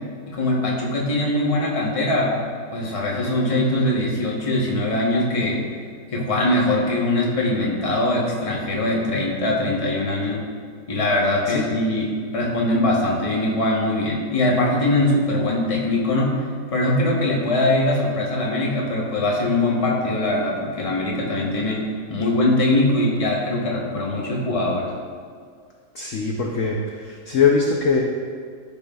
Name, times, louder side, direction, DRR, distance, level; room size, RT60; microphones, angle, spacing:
voice 1, 0.3-2.3 2.7-5.6 6.1-10.5 10.9-16.4 16.7-24.9, left 1 dB, 25° left, -3 dB, 0.9 m, -22 dB
voice 2, 25.9-28.0, left 5 dB, 65° left, 0 dB, 0.8 m, -21 dB
13.0 x 5.9 x 2.4 m, 2.1 s
omnidirectional pair, 2.1 m